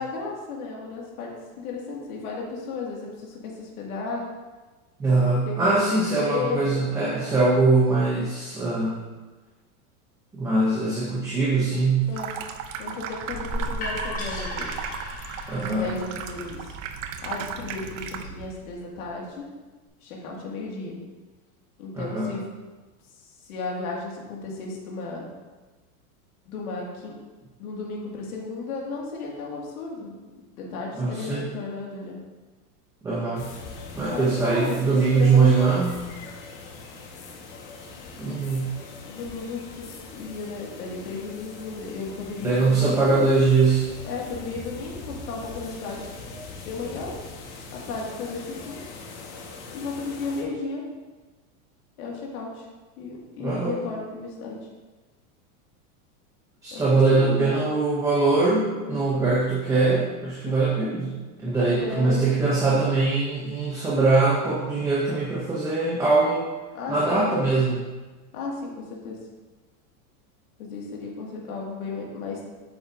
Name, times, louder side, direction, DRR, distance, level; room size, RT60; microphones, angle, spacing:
voice 1, 0.0-4.2 5.1-7.3 12.1-12.3 12.8-14.8 15.6-16.7 17.2-19.5 20.0-21.0 21.8-22.4 23.5-25.3 26.5-27.2 27.6-30.1 30.6-32.2 34.1-35.8 39.1-43.2 44.0-46.1 46.6-47.2 47.7-48.8 49.7-50.8 52.0-52.7 53.0-54.6 56.7-57.6 58.8-59.0 60.5-60.6 61.6-62.3 66.7-67.2 68.3-69.2 70.6-72.4, left 4 dB, 80° left, -2 dB, 2.2 m, -34 dB
voice 2, 5.0-9.0 10.3-12.1 15.5-15.9 21.9-22.3 31.0-31.4 33.0-33.5 33.9-36.0 38.2-38.8 42.4-43.9 53.4-53.8 56.6-61.1 61.4-66.4 66.9-67.9, right 3 dB, 5° right, -5 dB, 0.6 m, -22 dB
Water tap faucet / Sink (filling or washing), 12.0-18.5, right 7 dB, 60° right, 0.7 m, -36 dB
sound 1, 13.3-19.1, left 1 dB, 20° left, 1.2 m, -36 dB
sound 2, 33.4-50.4, left 4 dB, 50° left, 1.5 m, -42 dB
8.3 x 7.0 x 2.6 m, 1.2 s
supercardioid pair, 155°, 43 cm